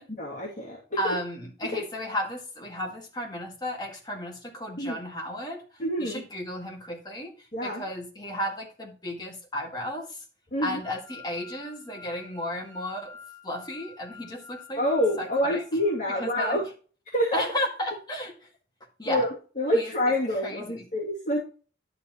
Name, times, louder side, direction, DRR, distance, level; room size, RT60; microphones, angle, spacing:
voice 1, 0.1-1.1 1.7-1.8 4.8-5.0 5.8-6.2 7.5-7.8 10.5-10.8 14.8-16.6 17.1-17.4 19.0-19.3 19.6-21.4, left 1 dB, 40° left, -6 dB, 2.6 m, -27 dB
voice 2, 1.0-10.3 10.6-13.2 13.4-14.8 15.2-15.6 16.2-16.6 17.3-18.5 19.0-19.3 19.7-19.9 20.4-20.9, equal, 20° left, 0 dB, 1.9 m, -34 dB
sound 1, 10.8-16.6, left 6 dB, 45° right, 3.9 m, -49 dB
11.0 x 6.9 x 3.1 m, 0.38 s
head